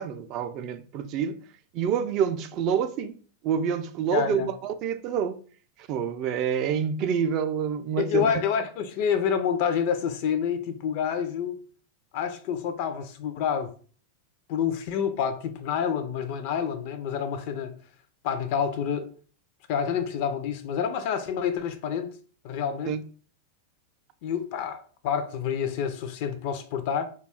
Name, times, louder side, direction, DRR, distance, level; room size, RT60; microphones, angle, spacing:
voice 1, 0.0-1.4 1.7-3.1 3.4-5.4 5.9-8.3 22.9-23.0, right 7 dB, 45° right, 0.3 m, -27 dB
voice 2, 4.1-4.5 8.0-11.6 12.1-13.7 14.5-17.8 18.2-19.1 19.7-22.2 22.4-23.0 24.2-27.0, left 7 dB, 55° left, 0.4 m, -28 dB
2.3 x 2.3 x 3.3 m
figure-of-eight pair, 90°, 0 cm